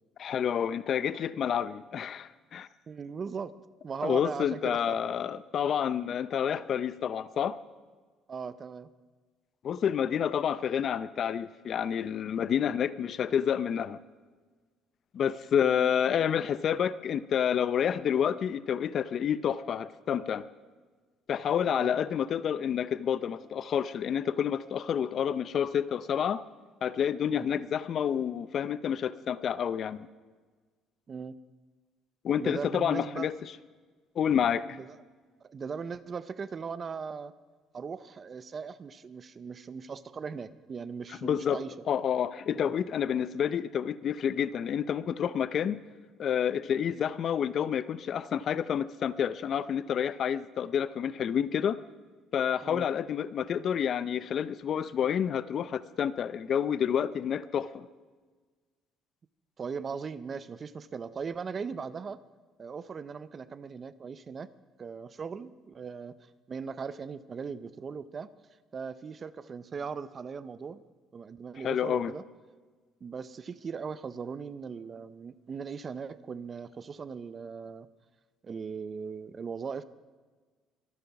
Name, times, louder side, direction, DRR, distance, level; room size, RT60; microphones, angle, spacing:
voice 1, 0.2-2.7 4.0-7.6 9.6-14.0 15.1-20.4 21.3-26.4 26.8-30.1 32.2-33.5 34.2-34.8 41.2-41.6 41.9-45.8 46.2-51.8 52.3-57.9 71.6-72.1, left 8 dB, 45° left, 16 dB, 0.6 m, -29 dB
voice 2, 2.9-3.5 3.8-5.0 8.3-8.9 15.6-15.9 21.7-22.0 27.3-27.5 31.1-31.4 32.4-33.3 34.8-34.9 35.4-37.3 37.7-41.7 42.5-42.7 45.7-45.8 52.6-52.9 59.6-62.2 62.6-64.5 64.8-66.2 66.5-68.3 68.7-70.8 71.1-72.2 73.0-77.9 78.4-79.8, right 5 dB, 30° right, 15 dB, 0.6 m, -39 dB
24.0 x 9.3 x 5.9 m, 1.4 s
cardioid pair, 140°, 0 cm